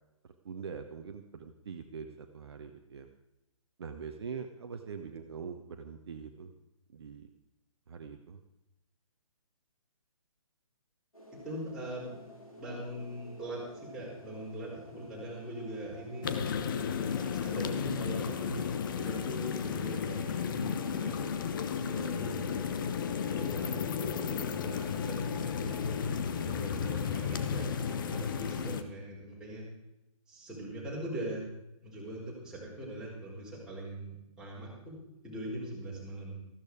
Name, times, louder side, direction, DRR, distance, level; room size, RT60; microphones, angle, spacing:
voice 1, 0.4-3.1 3.8-6.5 6.9-7.3 7.9-8.4, right 6 dB, 45° right, 6 dB, 1.1 m, -43 dB
sound 1, 11.1-28.7, equal, 85° left, 4.8 m, -51 dB
voice 2, 11.3-12.2 12.6-16.3 17.3-18.6 19.0-21.2 21.8-22.5 23.2-29.6 30.3-31.5 31.8-35.0 35.2-36.4, right 1 dB, 5° right, -6 dB, 4.9 m, -41 dB
sound 2, 16.2-28.8, left 7 dB, 35° left, 1.1 m, -33 dB
14.5 x 13.0 x 4.9 m, 0.91 s
figure-of-eight pair, 135°, 18 cm